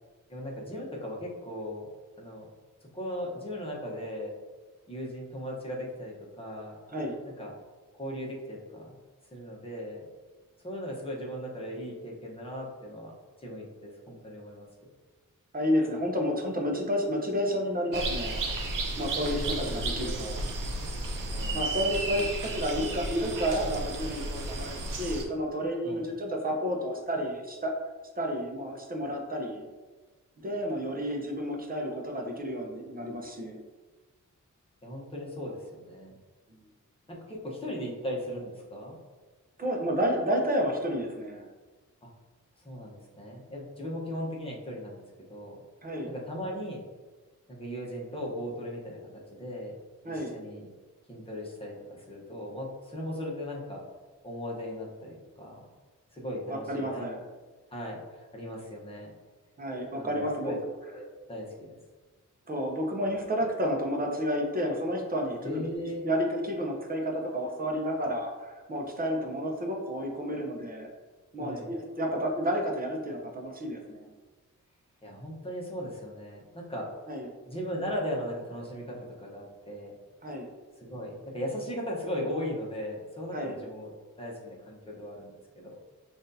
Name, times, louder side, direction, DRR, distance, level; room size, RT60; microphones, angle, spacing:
voice 1, 0.3-1.9 2.2-2.5 2.9-4.3 4.9-6.8 7.4-7.5 7.9-8.9 9.3-10.0 10.6-13.1 13.4-14.7 19.2-20.2 21.3-21.7 25.8-26.0 34.8-36.1 37.1-39.0 42.0-42.1 42.6-45.0 45.3-45.6 46.1-46.8 47.5-49.0 49.3-49.7 50.1-50.7 51.1-53.8 54.2-55.7 56.1-57.1 57.7-59.1 60.0-60.6 60.9-61.8 65.4-66.1 71.4-71.7 75.0-76.9 77.4-79.9 80.8-83.9 84.2-85.7, equal, 20° left, -3 dB, 1.1 m, -38 dB
voice 2, 15.5-18.6 19.0-20.4 21.5-27.7 28.2-29.7 30.4-33.6 39.6-41.4 45.8-46.1 50.0-50.3 56.5-57.2 59.6-60.5 62.5-70.9 71.3-74.1 77.1-77.3 80.2-80.5 83.3-83.6, equal, 30° right, 1 dB, 0.8 m, -31 dB
sound 1, 17.9-25.2, right 2 dB, 85° right, 0.7 m, -33 dB
5.9 x 2.6 x 2.7 m, 1.3 s
wide cardioid pair, 105°, 31 cm